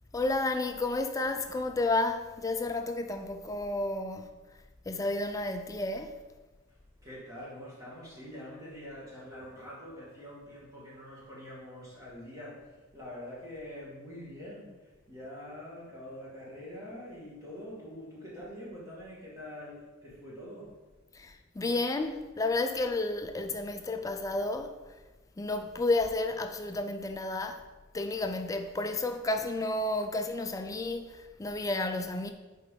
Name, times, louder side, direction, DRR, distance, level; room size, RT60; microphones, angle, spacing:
voice 1, 0.1-4.3 4.9-6.2 21.1-24.7 25.4-27.6 27.9-32.3, left 2 dB, 15° left, 0.3 m, -31 dB
voice 2, 7.0-20.7, left 1 dB, 15° right, 2.0 m, -45 dB
7.4 x 4.5 x 3.8 m
head